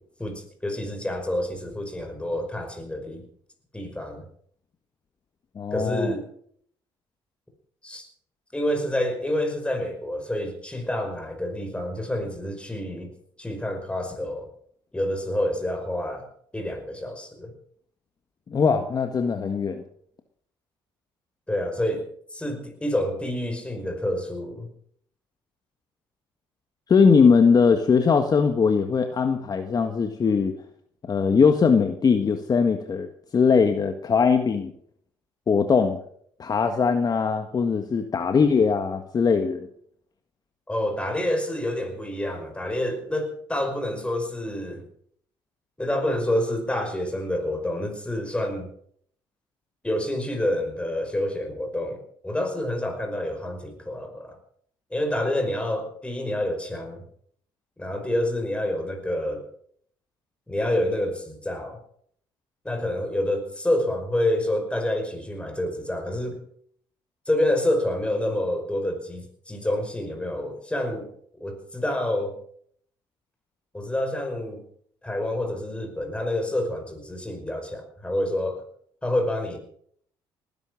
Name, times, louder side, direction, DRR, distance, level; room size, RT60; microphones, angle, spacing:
voice 1, 0.2-3.2 3.7-4.2 5.7-6.3 7.8-8.1 8.5-13.1 13.4-14.5 14.9-16.3 16.5-17.5 21.5-22.0 22.3-24.7 40.7-44.8 45.8-48.7 49.8-54.4 54.9-57.0 57.8-59.4 60.5-61.8 62.6-66.4 67.3-71.1 71.4-72.3 73.7-74.6 75.0-78.6 79.0-79.6, left 1 dB, 10° left, 5 dB, 5.4 m, -28 dB
voice 2, 5.5-6.1 18.5-19.8 26.9-30.5 31.1-33.1 33.3-34.7 35.5-36.0 36.4-39.7, left 5 dB, 40° left, 7 dB, 1.5 m, -20 dB
19.0 x 11.0 x 6.3 m, 0.65 s
supercardioid pair, 70°, 10 cm